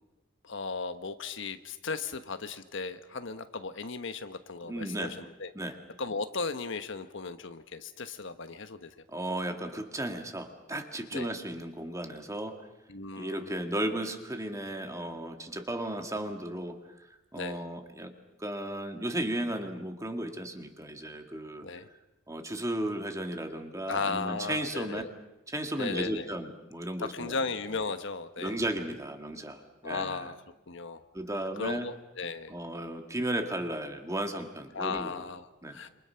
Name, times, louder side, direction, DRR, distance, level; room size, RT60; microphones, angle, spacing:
voice 1, 0.4-5.5 6.0-8.9 11.1-11.3 12.9-13.6 17.3-17.6 21.6-21.9 23.9-25.1 25.8-26.3 27.0-28.6 29.8-30.3 30.7-31.0 31.6-32.5 34.7-35.9, left 4 dB, 65° left, 9 dB, 1.3 m, -36 dB
voice 2, 4.7-5.2 5.5-5.8 9.1-12.6 13.2-16.8 17.3-18.1 18.4-21.6 22.3-25.0 25.5-27.4 28.4-30.3 31.1-31.9 32.5-35.1 35.6-35.8, right 1 dB, 15° right, 5 dB, 2.2 m, -35 dB
27.5 x 27.5 x 5.8 m, 0.94 s
head